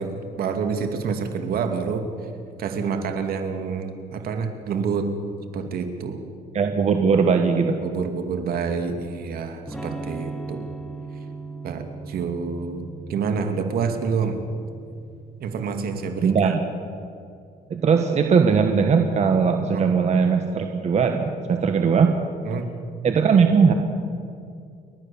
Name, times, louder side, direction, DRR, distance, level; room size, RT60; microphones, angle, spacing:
voice 1, 0.0-2.0 2.6-5.1 5.5-6.2 7.8-10.7 11.6-14.4 15.4-16.5 19.7-19.9 22.4-22.7, right 5 dB, 65° right, 6 dB, 2.5 m, -28 dB
voice 2, 6.5-7.8 16.2-16.6 17.7-22.2 23.0-23.7, right 6 dB, 40° right, 5 dB, 1.5 m, -19 dB
Electric guitar / Strum, 9.7-15.4, right 3 dB, 5° left, 1.9 m, -38 dB
30.0 x 12.5 x 7.2 m, 2.4 s
cardioid pair, 110°, 17 cm